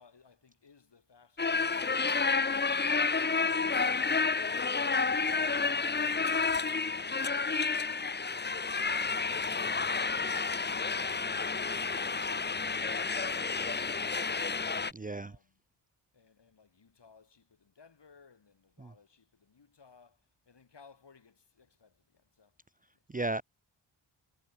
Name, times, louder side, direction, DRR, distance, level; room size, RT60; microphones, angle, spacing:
voice 1, 0.0-4.6 5.2-9.7 16.1-22.6 22.9-23.0, left 5 dB, 60° left, 7.1 m, -62 dB
sound 1, 1.4-14.9, left 4 dB, 20° left, 0.7 m, -30 dB
voice 2, 14.9-15.3 18.8-18.9 23.1-23.4, right 2 dB, 15° right, 0.7 m, -34 dB
cardioid pair, 60°, 47 cm